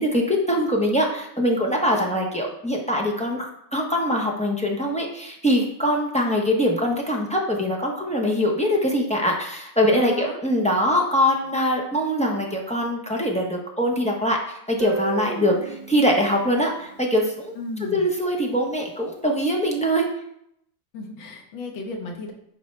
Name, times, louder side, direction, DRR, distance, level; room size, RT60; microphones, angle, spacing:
voice 1, 0.0-14.4 14.7-17.5 17.9-20.1, equal, 10° left, -1 dB, 0.3 m, -23 dB
voice 2, 9.9-10.4 17.6-18.1 20.9-22.3, left 3 dB, 85° left, 2 dB, 2.0 m, -33 dB
Guitar, 14.8-17.7, right 6 dB, 85° right, 1.5 m, -34 dB
10.0 x 4.6 x 3.3 m, 0.74 s
omnidirectional pair, 2.1 m